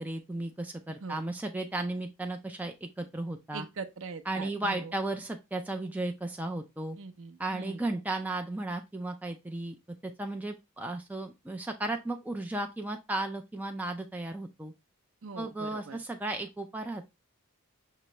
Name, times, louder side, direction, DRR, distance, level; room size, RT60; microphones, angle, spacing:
voice 1, 0.0-3.7 4.3-7.0 7.4-9.8 10.0-14.7 15.4-17.1, right 2 dB, 5° right, 0.4 m, -35 dB
voice 2, 3.5-4.9 7.0-7.8 15.2-16.0, right 4 dB, 60° right, 0.6 m, -41 dB
5.6 x 3.0 x 3.0 m
head